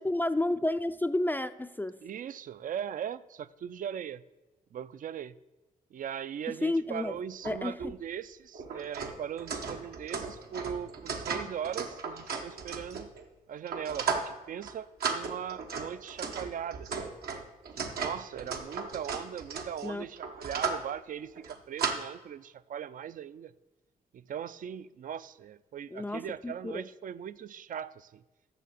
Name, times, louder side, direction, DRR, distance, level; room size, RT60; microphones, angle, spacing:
voice 1, 0.0-2.0 6.6-7.2 7.4-7.9 19.8-20.1 25.9-26.8, left 1 dB, 10° left, 10 dB, 0.4 m, -31 dB
voice 2, 2.0-4.2 4.7-5.3 5.9-13.1 13.5-17.0 17.8-23.5 24.1-28.2, right 9 dB, 60° right, 17 dB, 0.4 m, -39 dB
sound 1, 7.4-7.6 7.8-7.9 8.5-13.2 13.7-14.3 14.6-14.7 15.0-20.9 21.4-21.9, right 5 dB, 85° right, 1.0 m, -35 dB
6.9 x 6.4 x 7.5 m, 1.1 s
cardioid pair, 65°, 16 cm